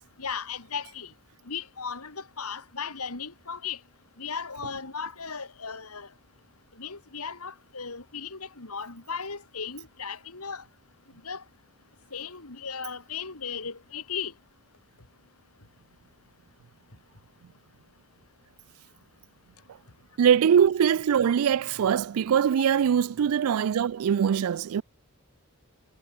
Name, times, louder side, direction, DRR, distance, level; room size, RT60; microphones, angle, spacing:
voice 1, 0.2-1.1 1.5-3.8 4.2-6.1 6.8-10.6 11.2-11.4 12.1-14.3, left 6 dB, 90° left, 2.9 m, -36 dB
voice 2, 20.2-24.8, right 8 dB, 80° right, 0.4 m, -22 dB
head